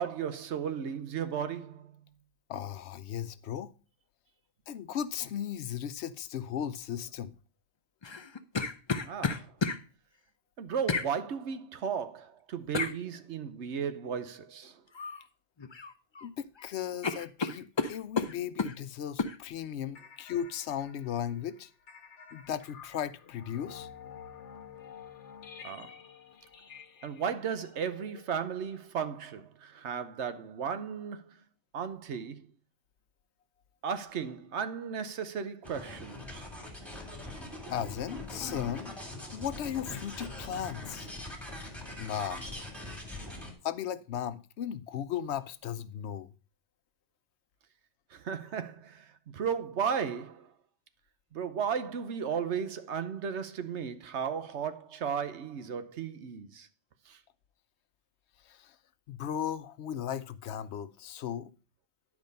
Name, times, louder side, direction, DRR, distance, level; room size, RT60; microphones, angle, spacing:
voice 1, 0.0-1.9 9.0-9.6 10.6-14.8 25.6-26.0 27.0-31.4 31.7-32.5 33.8-36.5 48.1-50.5 51.3-56.7 57.1-57.2, right 7 dB, 80° right, 1.1 m, -35 dB
voice 2, 2.5-3.7 4.7-7.3 16.2-21.7 22.3-23.9 37.7-39.0 39.3-41.1 42.0-42.5 43.6-46.3 58.5-58.8 59.1-61.5, left 9 dB, 75° left, 0.9 m, -36 dB
sound 1, 8.0-9.8 10.9-11.1 12.7-13.0 14.9-15.2 15.6-16.3 16.6-16.7 17.0-18.8 19.2-19.4, left 4 dB, 35° left, 0.4 m, -32 dB
sound 2, 19.9-28.9, left 7 dB, 90° left, 1.2 m, -51 dB
sound 3, 35.6-43.5, left 1 dB, ahead, 2.1 m, -42 dB
10.5 x 5.0 x 5.2 m
omnidirectional pair, 1.2 m